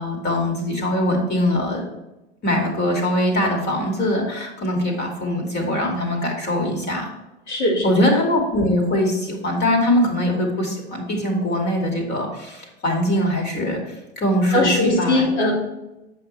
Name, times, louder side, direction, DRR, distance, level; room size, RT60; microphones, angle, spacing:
voice 1, 0.0-1.9 2.4-7.1 7.8-15.3, left 1 dB, 30° left, 1 dB, 2.3 m, -22 dB
voice 2, 7.5-8.0 14.5-15.5, left 2 dB, 80° left, -3 dB, 2.7 m, -20 dB
7.8 x 6.0 x 3.2 m, 0.97 s
hypercardioid pair, 105°, 34 cm